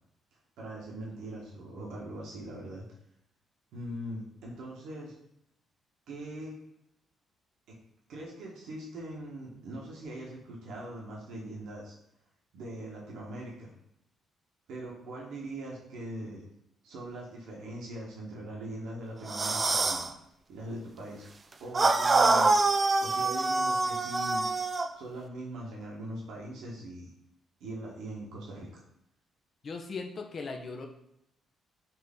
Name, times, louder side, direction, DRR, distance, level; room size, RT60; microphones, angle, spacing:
voice 1, 0.6-2.8 3.7-5.1 6.1-6.5 7.7-7.8 8.1-11.9 12.5-13.7 14.7-16.4 16.8-20.1 20.5-21.3 21.6-22.5 23.0-24.4 24.9-27.1 27.6-28.7, right 1 dB, 80° right, -3 dB, 1.0 m, -41 dB
sound 1, 19.3-20.1 21.7-24.9, right 3 dB, 30° right, 0.3 m, -25 dB
voice 2, 29.6-30.9, left 4 dB, 45° left, 3 dB, 0.5 m, -38 dB
4.2 x 2.6 x 3.5 m, 0.79 s
cardioid pair, 90°, 0 cm